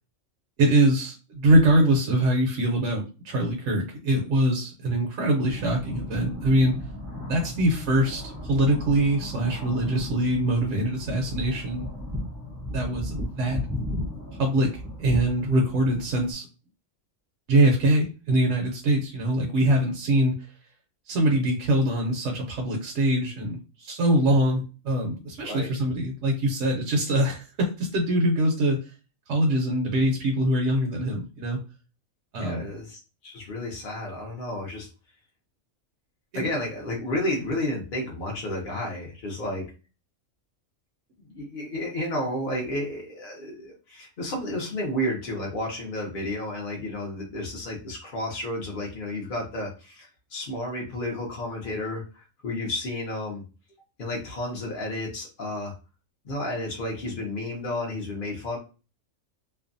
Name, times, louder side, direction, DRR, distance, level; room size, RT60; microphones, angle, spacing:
voice 1, 0.6-6.7 7.3-8.2 8.5-11.9 12.7-13.6 14.4-16.5 17.5-20.3 21.1-28.8 29.3-31.6 32.3-32.7 36.3-36.5, right 1 dB, 70° right, 1 dB, 0.9 m, -23 dB
sound 1, 5.4-16.3, left 1 dB, 15° right, 0.5 m, -35 dB
voice 2, 32.4-34.9 36.3-39.6 41.3-53.4 54.0-55.7 56.2-58.6, left 1 dB, 50° left, -2 dB, 0.7 m, -31 dB
2.5 x 2.2 x 2.5 m, 0.32 s
omnidirectional pair, 1.4 m